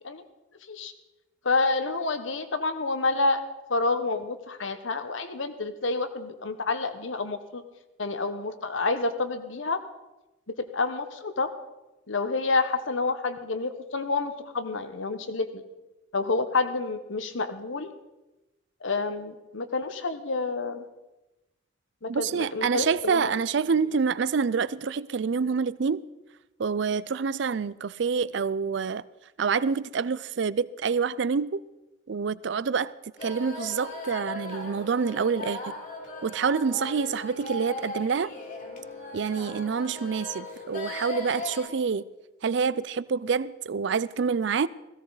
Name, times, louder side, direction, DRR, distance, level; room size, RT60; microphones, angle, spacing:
voice 1, 1.4-3.4 3.7-7.6 8.0-9.8 10.6-11.5 12.1-15.6 16.1-17.9 18.8-20.8 22.0-23.3, left 3 dB, 75° left, 1.1 m, -28 dB
voice 2, 22.1-26.0 26.6-29.0 29.4-31.6 32.1-32.9 33.2-35.7 36.2-38.3 39.1-42.1 42.4-44.7, right 5 dB, 60° right, 0.4 m, -27 dB
sound 1, 33.2-41.7, left 1 dB, 40° left, 2.2 m, -38 dB
17.0 x 16.0 x 4.0 m
head